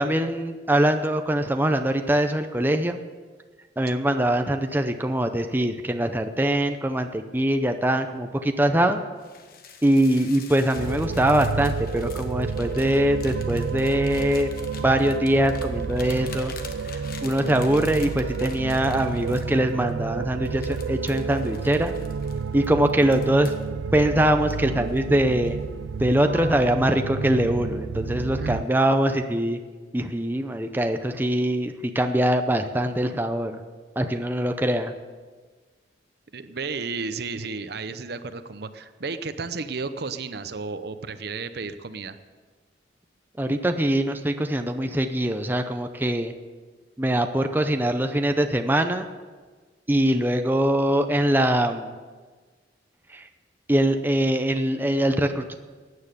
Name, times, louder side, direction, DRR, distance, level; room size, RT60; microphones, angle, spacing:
voice 1, 0.0-3.0 3.8-9.0 9.8-14.5 14.8-16.5 17.2-22.0 22.5-23.5 23.9-25.6 26.0-29.6 29.9-33.6 34.0-34.9 43.4-46.3 47.0-49.0 49.9-51.9 53.1-53.3 53.7-55.5, right 1 dB, 10° right, 6 dB, 0.6 m, -23 dB
sound 1, 9.2-20.0 20.5-23.7 24.2-25.1 25.5-25.8 26.2-26.8, left 5 dB, 55° left, 1.3 m, -45 dB
sound 2, 10.7-28.6, right 5 dB, 80° right, 0.4 m, -31 dB
voice 2, 28.4-28.7 36.3-42.2, right 4 dB, 60° right, 11 dB, 0.8 m, -33 dB
15.5 x 9.7 x 6.8 m, 1.4 s
head